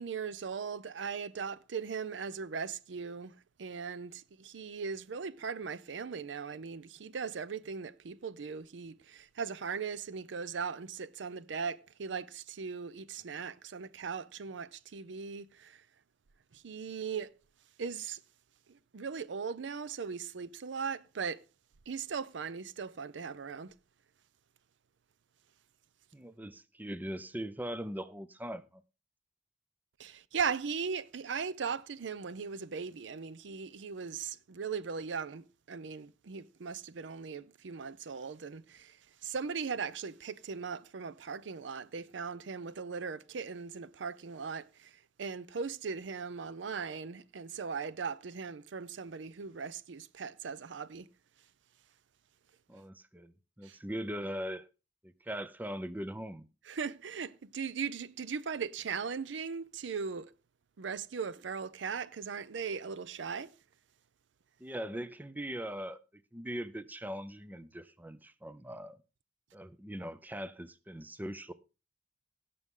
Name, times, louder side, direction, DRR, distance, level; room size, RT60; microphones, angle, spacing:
voice 1, 0.0-15.8 16.5-17.3 17.8-18.2 18.7-21.4 21.9-23.7 30.0-51.1 53.6-53.8 56.7-60.3 60.8-63.5, right 5 dB, 75° right, 0.5 m, -39 dB
voice 2, 26.1-28.8 52.7-54.7 55.0-56.5 64.6-69.0 69.5-71.5, equal, 10° right, 0.5 m, -40 dB
17.0 x 6.8 x 3.7 m
head